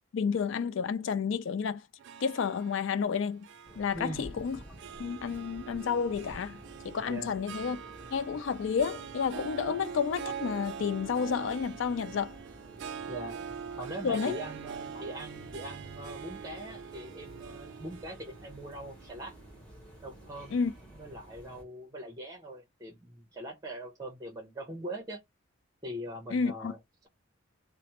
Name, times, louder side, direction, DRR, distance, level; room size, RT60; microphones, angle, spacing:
voice 1, 0.1-1.8 2.2-3.4 3.8-4.6 5.0-6.6 6.8-7.8 8.1-12.3 14.0-14.4 20.5-20.7 26.3-26.7, left 6 dB, 65° left, 0.4 m, -30 dB
Harp, 2.0-20.4, right 7 dB, 60° right, 0.3 m, -44 dB
sound 1, 3.6-21.6, right 1 dB, 5° left, 1.1 m, -51 dB
voice 2, 3.9-4.3 7.1-7.3 13.1-13.4 13.8-19.4 20.0-20.6 20.9-25.2 25.8-27.1, right 1 dB, 20° right, 0.6 m, -42 dB
3.1 x 2.0 x 2.8 m
head